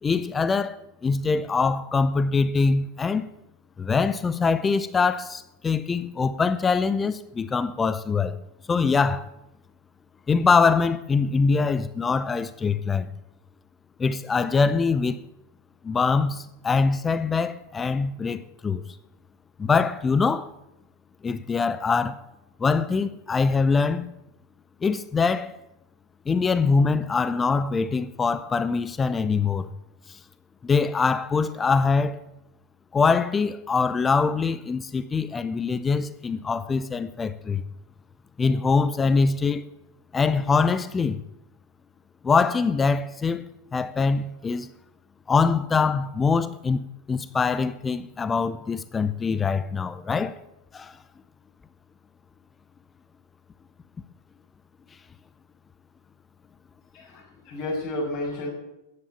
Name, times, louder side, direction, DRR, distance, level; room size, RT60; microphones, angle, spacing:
voice 1, 0.0-3.3 3.8-8.4 8.7-9.3 10.3-13.1 14.0-15.2 15.8-18.8 19.6-20.5 21.2-22.2 22.6-24.1 24.8-25.6 26.3-29.7 30.1-30.2 30.6-32.2 32.9-37.6 38.4-39.6 40.1-41.2 42.2-43.5 43.7-44.7 45.3-50.3 50.7-51.0, left 4 dB, 15° left, 0.6 m, -23 dB
voice 2, 56.9-58.5, left 1 dB, 40° left, 6.4 m, -31 dB
15.0 x 9.9 x 7.2 m
figure-of-eight pair, 90°, 0 cm